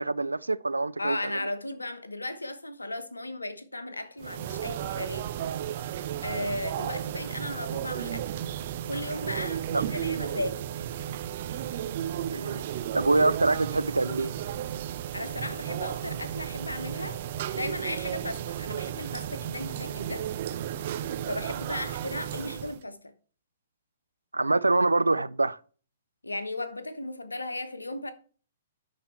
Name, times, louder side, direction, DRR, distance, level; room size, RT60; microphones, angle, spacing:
voice 1, 0.0-1.4 9.7-9.8 12.3-12.6 12.9-14.3 24.3-25.6, right 2 dB, 80° right, 0.4 m, -25 dB
voice 2, 1.0-5.3 6.2-8.3 8.9-10.6 15.1-17.2 17.5-20.3 21.3-23.0 26.2-28.1, left 1 dB, 85° left, 1.1 m, -35 dB
sound 1, 4.2-22.8, right 10 dB, 45° right, 0.7 m, -34 dB
11.5 x 4.3 x 4.4 m
figure-of-eight pair, 115°, 0 cm